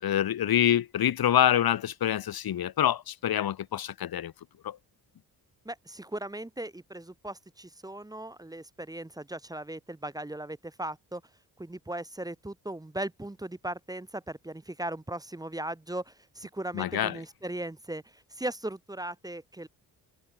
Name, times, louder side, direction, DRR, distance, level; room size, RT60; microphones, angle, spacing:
voice 1, 0.0-4.3 4.6-4.8 16.7-17.2, left 10 dB, 70° left, 2.4 m, -26 dB
voice 2, 5.7-11.2 11.6-19.7, right 1 dB, 10° right, 1.9 m, -38 dB
wide cardioid pair, 135°, 38 cm